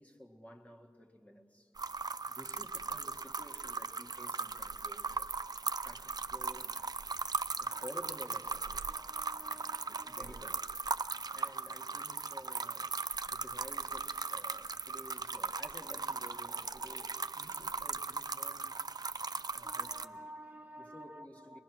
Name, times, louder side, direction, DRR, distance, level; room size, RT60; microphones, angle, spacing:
voice 1, 0.0-1.7 2.3-5.3 5.8-6.8 7.6-8.9 9.8-10.7 11.3-13.0 13.3-18.8 19.5-20.3 20.8-21.6, left 1 dB, 20° left, 1.7 m, -53 dB
sound 1, 1.8-20.0, right 4 dB, 60° right, 0.4 m, -38 dB
voice 2, 7.5-7.8 8.7-10.5 11.1-11.2 19.6-21.6, right 1 dB, 20° right, 1.0 m, -52 dB
23.5 x 20.5 x 6.2 m
wide cardioid pair, 60°, 8 cm